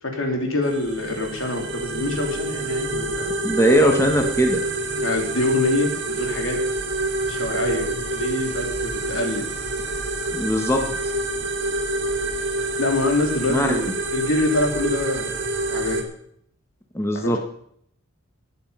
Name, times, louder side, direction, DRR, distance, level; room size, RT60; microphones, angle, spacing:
voice 1, 0.0-3.3 4.9-6.6 7.3-9.5 11.4-11.5 12.8-15.3 15.7-16.0 17.1-17.4, left 2 dB, 80° left, 3 dB, 2.9 m, -25 dB
sound 1, 0.6-16.0, right 2 dB, 60° right, 2.1 m, -27 dB
voice 2, 3.4-4.6 10.3-10.8 13.5-13.7 16.9-17.4, equal, 15° left, 3 dB, 1.3 m, -19 dB
18.5 x 7.1 x 5.6 m, 0.67 s
head